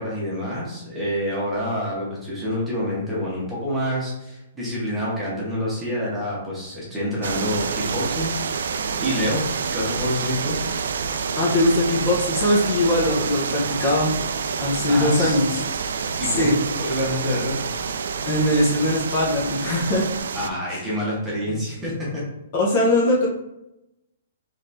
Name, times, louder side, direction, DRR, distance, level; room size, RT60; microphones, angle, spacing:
voice 1, 0.0-9.4 9.7-10.6 14.9-15.4 16.2-17.5 20.3-22.2, equal, 5° right, -7 dB, 1.2 m, -27 dB
sound 1, 7.2-20.5, right 5 dB, 75° right, 0.3 m, -28 dB
voice 2, 11.3-14.1 14.6-15.5 16.3-16.6 18.2-20.0 22.5-23.3, left 1 dB, 35° left, -4 dB, 0.8 m, -20 dB
4.1 x 3.2 x 2.7 m, 0.87 s
hypercardioid pair, 165°, 0 cm